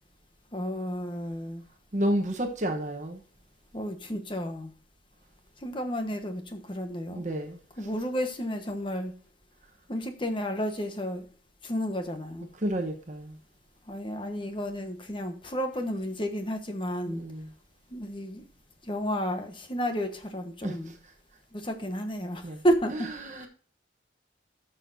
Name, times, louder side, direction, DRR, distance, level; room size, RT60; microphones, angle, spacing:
voice 1, 0.5-1.6 3.7-4.7 5.6-7.2 7.8-9.1 9.9-11.2 11.6-12.5 13.9-17.2 17.9-18.4 18.8-20.9 21.5-23.1, equal, 25° left, 1.1 m, -31 dB
voice 2, 1.9-3.2 7.1-7.6 12.6-13.4 17.1-17.5 20.6-21.1 22.4-22.6 23.2-23.5, right 1 dB, 40° right, 1.0 m, -31 dB
12.0 x 6.5 x 2.7 m
head